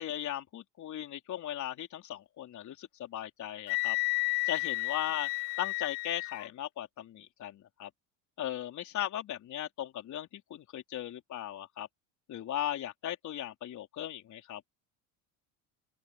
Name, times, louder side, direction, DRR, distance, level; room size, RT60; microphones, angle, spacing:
voice 1, 0.0-4.0 4.5-5.3 5.6-7.9 8.4-11.9 12.3-14.6, left 11 dB, 45° left, 3.9 m, -38 dB
Wind instrument woodwind instrument, 3.7-6.5, left 34 dB, 80° left, 4.6 m, -32 dB
open air
supercardioid pair, 115°, 40 cm